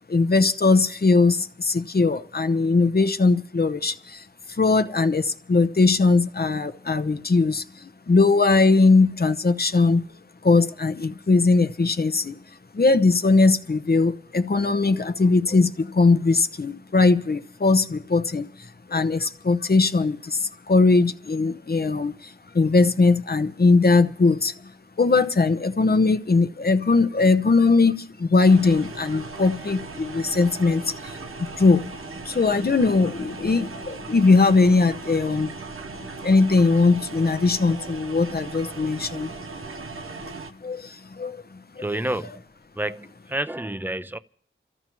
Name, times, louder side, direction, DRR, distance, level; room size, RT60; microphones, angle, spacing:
voice 1, 0.1-10.0 10.4-12.4 12.7-24.5 25.0-31.1 31.4-31.9 32.2-35.5 36.2-39.3 39.9-40.0 40.6-41.8, left 3 dB, 45° left, 0.8 m, -20 dB
sound 1, 28.4-40.5, right 3 dB, 80° right, 0.9 m, -38 dB
voice 2, 41.8-42.3 42.8-44.2, right 1 dB, 10° right, 0.6 m, -29 dB
28.5 x 14.0 x 3.1 m
cardioid pair, 40°, 21 cm